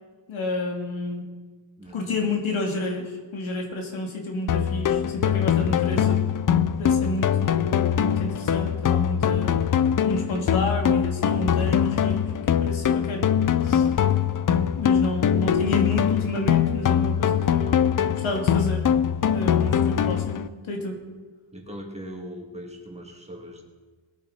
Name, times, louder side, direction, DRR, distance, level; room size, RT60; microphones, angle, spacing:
voice 1, 0.3-1.3 1.9-6.2 6.8-13.3 13.6-13.9 14.7-18.9 19.2-21.0, left 2 dB, 80° left, 1 dB, 2.6 m, -30 dB
voice 2, 1.8-2.2 21.5-23.6, equal, 15° right, 0 dB, 2.5 m, -40 dB
sound 1, 4.5-20.5, left 9 dB, 45° left, 0.5 m, -22 dB
20.5 x 8.6 x 4.2 m, 1.4 s
wide cardioid pair, 110°, 47 cm